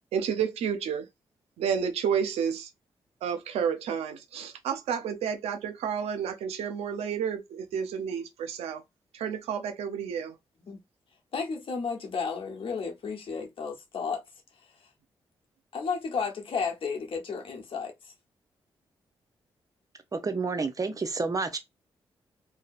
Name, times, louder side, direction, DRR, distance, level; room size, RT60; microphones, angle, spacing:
voice 1, 0.1-1.1 1.6-2.7 3.2-8.8 9.1-10.4, right 7 dB, 85° right, 0.5 m, -30 dB
voice 2, 11.3-14.2 14.8-14.9 15.7-18.1, left 5 dB, 60° left, 0.9 m, -33 dB
voice 3, 20.1-21.6, right 4 dB, 35° right, 0.7 m, -29 dB
2.7 x 2.1 x 2.4 m
supercardioid pair, 50°, 10 cm